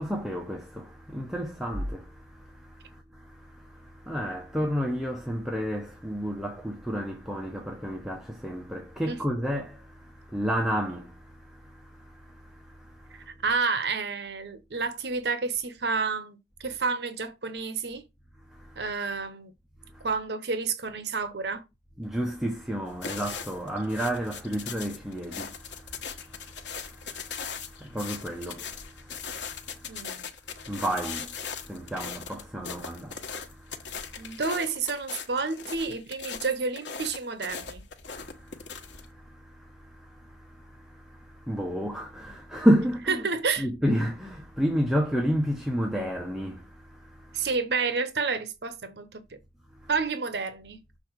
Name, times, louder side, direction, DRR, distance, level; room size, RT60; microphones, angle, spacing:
voice 1, 0.0-13.3 18.5-18.8 19.9-20.0 22.0-30.0 30.5-34.4 38.2-43.3 43.6-47.5 49.8-49.9, equal, 5° right, 0.9 m, -32 dB
voice 2, 13.3-18.0 18.8-19.5 20.0-21.6 29.9-30.2 34.2-37.8 43.1-43.7 47.3-49.2 49.9-50.8, right 4 dB, 65° right, 0.9 m, -30 dB
sound 1, 22.9-39.1, left 6 dB, 85° left, 1.1 m, -39 dB
6.9 x 3.9 x 6.1 m
head